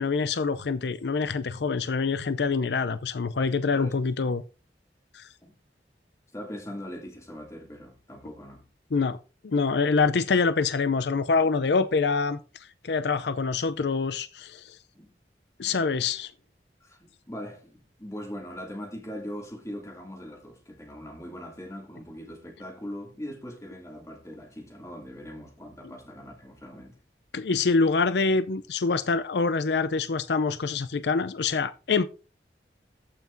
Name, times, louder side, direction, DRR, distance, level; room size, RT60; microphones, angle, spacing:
voice 1, 0.0-4.4 5.1-5.3 8.9-9.2 9.4-14.8 15.6-16.3 27.3-32.1, left 4 dB, 75° left, 0.5 m, -25 dB
voice 2, 6.3-8.6 14.9-15.1 15.7-16.1 16.8-27.0, equal, 15° left, 2.6 m, -41 dB
14.5 x 5.8 x 2.6 m
head